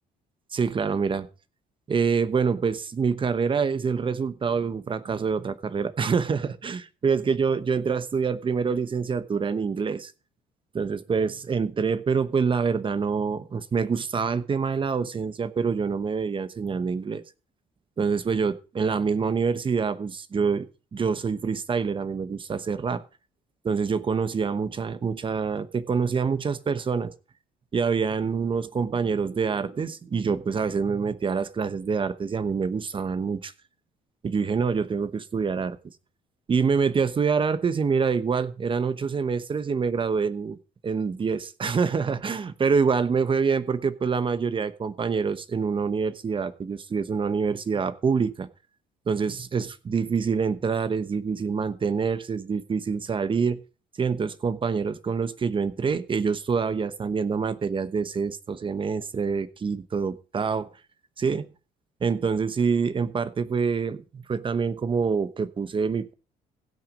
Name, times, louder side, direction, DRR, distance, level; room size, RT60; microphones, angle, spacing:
voice 1, 0.5-1.3 1.9-10.1 10.7-17.2 18.0-23.0 23.6-27.1 27.7-33.5 34.2-35.8 36.5-40.6 40.8-48.5 49.1-53.6 54.0-60.7 61.2-61.5 62.0-66.1, right 5 dB, 30° right, 14 dB, 1.0 m, -26 dB
16.0 x 6.2 x 5.0 m, 0.34 s
cardioid pair, 110°, 17 cm